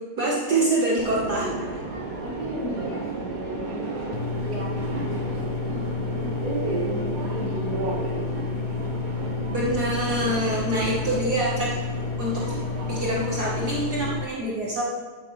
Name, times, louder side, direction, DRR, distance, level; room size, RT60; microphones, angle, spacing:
voice 1, 0.2-1.4 4.5-4.7 9.4-11.8 12.2-12.4 12.9-14.8, right 1 dB, 70° right, -5 dB, 0.9 m, -25 dB
Subway metro underground, 1.0-14.1, right 3 dB, 40° right, 1.3 m, -32 dB
voice 2, 2.2-4.5 4.8-8.6, equal, 5° left, -7 dB, 2.8 m, -37 dB
sound 1, 4.1-14.2, left 7 dB, 80° left, 1.6 m, -31 dB
14.5 x 8.9 x 3.2 m, 1.4 s
omnidirectional pair, 3.9 m